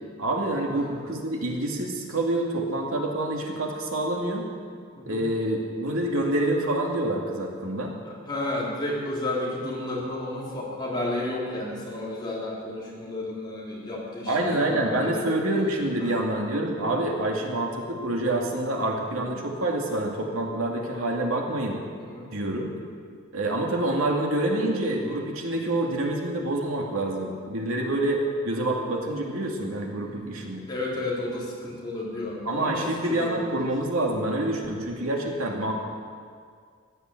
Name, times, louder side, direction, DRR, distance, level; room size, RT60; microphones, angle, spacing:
voice 1, 0.2-4.4 5.1-8.0 14.3-21.8 22.3-22.7 23.3-30.6 32.4-35.7, right 1 dB, 80° right, 0 dB, 2.4 m, -27 dB
voice 2, 8.0-15.3 16.0-16.2 16.8-16.9 19.1-19.3 20.2-20.3 22.0-22.3 30.0-30.3 30.7-33.4 35.0-35.1, left 1 dB, 20° left, -5 dB, 3.5 m, -32 dB
16.0 x 10.5 x 7.8 m, 2.1 s
head